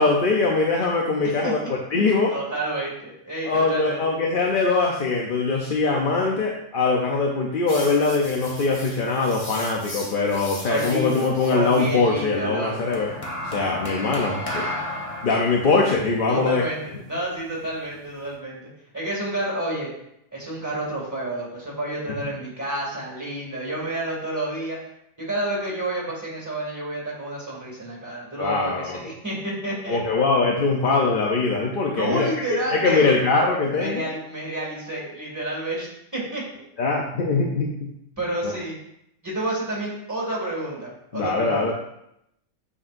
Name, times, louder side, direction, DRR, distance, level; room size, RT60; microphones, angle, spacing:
voice 1, 0.0-2.3 3.4-13.1 13.5-14.7 15.2-16.6 28.4-29.0 29.9-34.0 36.8-37.9 41.1-41.7, left 3 dB, 50° left, -1 dB, 0.7 m, -22 dB
voice 2, 2.3-4.0 10.6-13.0 16.3-18.6 18.9-19.9 20.3-24.8 25.2-30.0 31.9-33.1 33.7-36.4 38.2-38.7 39.2-41.7, right 1 dB, 10° right, -5 dB, 2.2 m, -29 dB
sound 1, 7.7-11.9 12.9-18.3, left 1 dB, 25° left, 1.0 m, -35 dB
8.2 x 5.5 x 2.6 m, 0.79 s
omnidirectional pair, 1.4 m